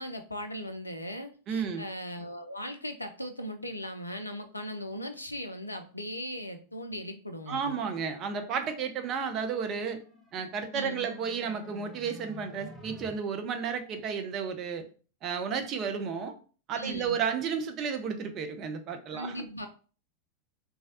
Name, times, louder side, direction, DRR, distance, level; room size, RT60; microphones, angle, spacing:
voice 1, 0.0-7.7 10.7-11.1 16.8-17.2 19.1-19.7, equal, 85° left, 7 dB, 0.4 m, -38 dB
voice 2, 1.5-1.8 7.5-10.0 10.3-14.8 15.2-16.3 16.7-19.3, right 6 dB, 35° right, 7 dB, 0.5 m, -32 dB
sound 1, 9.9-13.1, left 1 dB, 10° left, 0.8 m, -49 dB
3.1 x 2.3 x 2.8 m, 0.39 s
figure-of-eight pair, 90°, 0 cm